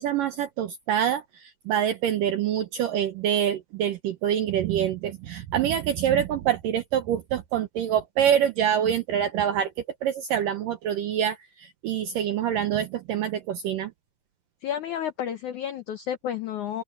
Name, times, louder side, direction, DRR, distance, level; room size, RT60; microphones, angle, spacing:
voice 1, 0.0-9.7 10.0-13.9, right 9 dB, 75° right, 2.0 m, -26 dB
voice 2, 14.6-16.8, left 9 dB, 85° left, 1.7 m, -31 dB
open air
omnidirectional pair, 5.0 m